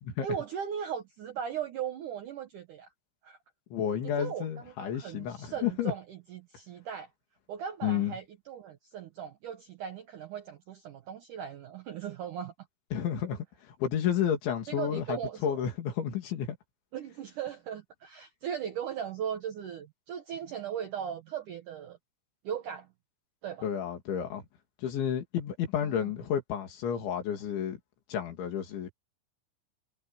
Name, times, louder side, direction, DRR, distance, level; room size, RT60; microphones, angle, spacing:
voice 1, 0.2-2.9 3.2-3.4 4.0-7.1 7.5-12.5 14.7-15.6 16.9-22.0 22.4-22.9 23.4-23.7 25.8-26.1, right 8 dB, 75° right, 1.9 m, -38 dB
voice 2, 3.7-5.9 7.8-8.1 12.9-13.5 13.8-16.6 23.6-24.4 24.8-27.8 28.1-28.9, left 9 dB, 80° left, 5.3 m, -31 dB
omnidirectional pair, 5.3 m